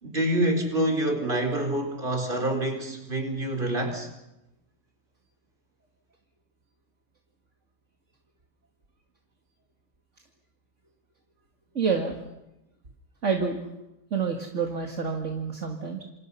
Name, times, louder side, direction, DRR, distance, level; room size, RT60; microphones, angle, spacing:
voice 1, 0.0-4.1, right 1 dB, 35° right, 4 dB, 4.7 m, -27 dB
voice 2, 11.7-12.2 13.2-13.6 14.1-16.0, right 5 dB, 60° right, 2 dB, 2.4 m, -28 dB
28.0 x 27.0 x 5.7 m, 0.90 s
omnidirectional pair, 1.5 m